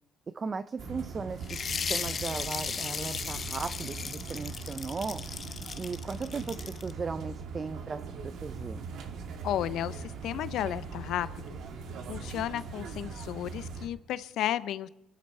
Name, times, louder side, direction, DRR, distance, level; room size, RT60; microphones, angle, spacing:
voice 1, 0.3-1.6 1.9-5.2 5.8-8.9, right 4 dB, 30° right, 12 dB, 0.5 m, -37 dB
sound 1, 0.8-13.9, right 4 dB, 65° right, 1.8 m, -41 dB
sound 2, 1.4-6.9, left 6 dB, 40° left, 0.9 m, -36 dB
voice 2, 9.4-11.6 12.1-14.9, left 12 dB, 70° left, 15 dB, 0.7 m, -33 dB
25.0 x 12.0 x 4.4 m, 0.87 s
cardioid pair, 95°, 0 cm